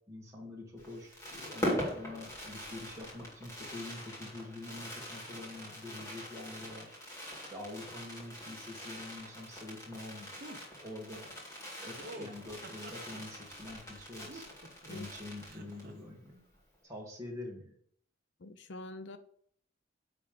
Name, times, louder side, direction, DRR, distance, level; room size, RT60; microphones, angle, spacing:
voice 1, 0.1-7.0 7.4-10.3 10.8-11.3 11.8-14.5 14.9-16.4 16.8-17.7, left 2 dB, 15° right, -3 dB, 2.1 m, -46 dB
Fireworks, 0.8-16.0 16.2-16.3 16.5-16.8, equal, 15° left, 2.3 m, -42 dB
sound 1, 10.4-10.6 12.0-13.2 13.9-14.9 15.4-15.9, right 1 dB, 50° right, 0.9 m, -48 dB
voice 2, 18.4-19.2, left 2 dB, 60° left, 10 dB, 0.6 m, -45 dB
9.8 x 3.5 x 5.2 m, 0.63 s
head